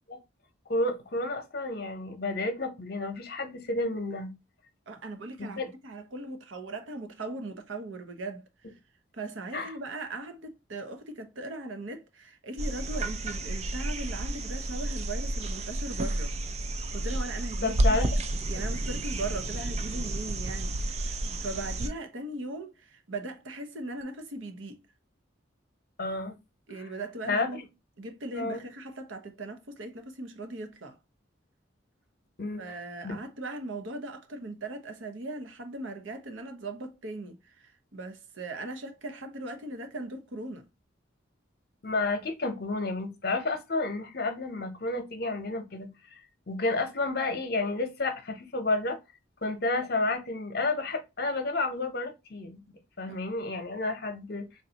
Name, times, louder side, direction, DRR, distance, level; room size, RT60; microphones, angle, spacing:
voice 1, 0.7-4.3 5.4-5.7 9.5-9.7 17.6-18.1 18.5-18.6 26.0-26.4 26.8-26.9 27.2-27.6 28.3-28.6 32.4-32.8 33.0-33.2 41.8-45.9 46.5-49.0 49.4-54.5, left 2 dB, 50° left, 0.8 m, -31 dB
voice 2, 4.9-8.7 9.1-16.3 16.9-18.0 18.5-24.8 26.7-27.6 28.0-31.0 32.6-40.7 53.1-53.2, right 2 dB, 80° right, 0.8 m, -39 dB
sound 1, 12.6-21.9 24.0-24.1, right 1 dB, 35° right, 0.3 m, -31 dB
3.7 x 2.6 x 2.8 m
head